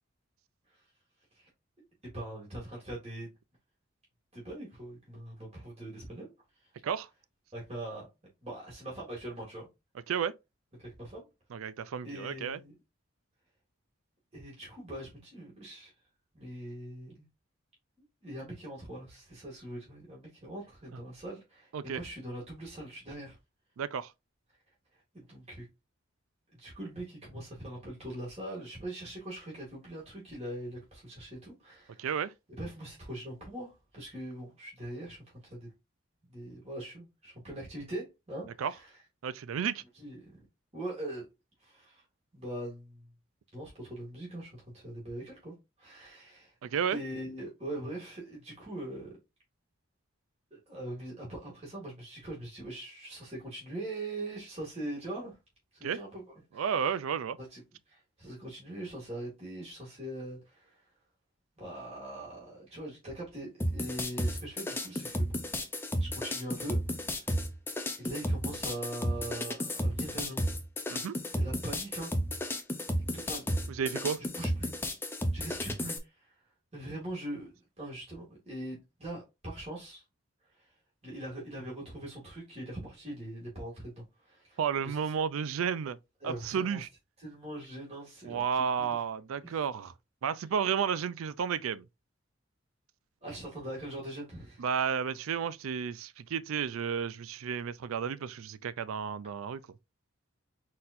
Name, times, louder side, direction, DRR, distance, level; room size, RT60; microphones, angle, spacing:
voice 1, 2.0-3.3 4.3-6.3 7.5-8.1 8.4-9.7 10.8-11.3 12.0-12.7 14.3-15.9 16.3-17.3 18.2-23.3 25.1-25.7 26.5-32.1 32.6-35.2 35.5-35.7 36.3-38.9 40.0-40.3 40.7-41.2 41.6-42.0 42.3-43.1 43.5-45.5 45.8-46.5 46.9-49.2 50.5-55.4 55.7-56.2 56.5-56.7 57.4-57.6 57.9-60.8 61.6-65.4 66.0-67.3 68.0-70.4 71.4-72.1 72.9-73.5 73.7-73.8 74.4-74.7 75.3-76.3 76.7-80.0 81.0-85.0 86.2-86.8 87.2-88.9 89.4-89.6 93.2-94.6, right 1 dB, 30° right, 2.3 m, -42 dB
voice 2, 11.5-12.6 21.7-22.0 23.8-24.1 32.0-32.3 38.6-38.7 39.2-39.8 46.6-47.0 55.8-56.0 56.5-57.4 70.9-71.1 73.7-74.2 84.6-86.0 86.2-86.9 88.2-89.9 90.2-91.8 94.6-99.6, right 7 dB, 85° right, 0.4 m, -32 dB
sound 1, 63.6-76.0, equal, 10° left, 0.5 m, -33 dB
4.2 x 4.1 x 2.6 m
head